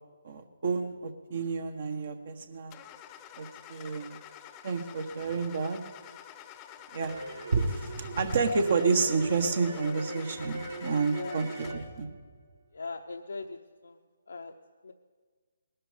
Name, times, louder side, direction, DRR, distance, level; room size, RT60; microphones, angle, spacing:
voice 1, 0.2-2.8 3.4-4.2 4.6-5.8 6.9-7.1 7.5-12.1, right 4 dB, 55° right, 7 dB, 1.5 m, -30 dB
Car / Engine starting, 2.7-12.0, left 10 dB, 20° left, 0.8 m, -49 dB
sound 1, 7.0-12.8, right 2 dB, 75° right, 5.8 m, -41 dB
voice 2, 11.1-11.7 12.7-14.0 14.3-14.5 14.8-14.9, left 3 dB, 75° left, 3 dB, 0.9 m, -41 dB
19.5 x 12.0 x 5.4 m, 1.5 s
figure-of-eight pair, 150°, 0 cm